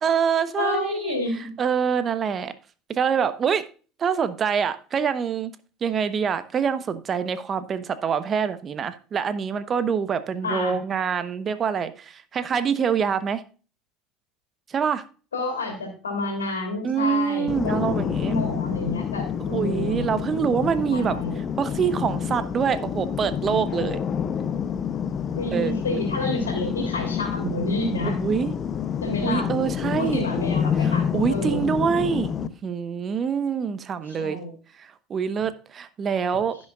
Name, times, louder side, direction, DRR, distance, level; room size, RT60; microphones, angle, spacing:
voice 1, 0.0-1.2 1.6-2.5 2.9-3.6 4.0-5.5 5.8-13.4 14.7-15.0 16.8-18.3 19.5-21.2 21.6-24.0 25.5-26.0 28.0-28.5 29.2-30.3 30.8-34.4 34.8-36.6, right 7 dB, 40° right, 1.0 m, -25 dB
voice 2, 0.5-1.5 10.4-10.8 15.3-17.9 18.2-20.1 20.9-21.4 25.3-28.2 29.0-29.5 29.8-31.7 34.0-34.5, left 2 dB, 90° left, 3.2 m, -29 dB
sound 1, 17.5-32.5, left 8 dB, 40° left, 0.8 m, -28 dB
16.0 x 6.4 x 2.4 m
hypercardioid pair, 65°, 0 cm